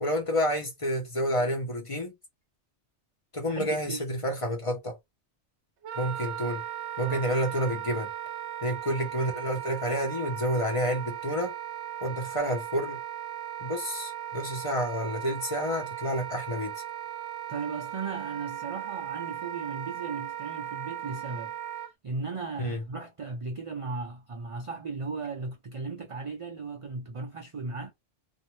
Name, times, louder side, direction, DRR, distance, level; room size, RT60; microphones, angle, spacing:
voice 1, 0.0-2.1 3.3-5.0 6.0-6.6 7.0-8.1 8.6-11.5 12.0-13.0 13.6-16.8 22.6-22.8, equal, 35° left, 0.8 m, -29 dB
voice 2, 3.5-4.2 7.0-7.2 17.5-21.5 22.0-27.9, right 4 dB, 55° right, 0.3 m, -36 dB
Wind instrument woodwind instrument, 5.8-21.9, right 11 dB, 80° right, 0.9 m, -37 dB
2.6 x 2.1 x 3.0 m
omnidirectional pair, 1.2 m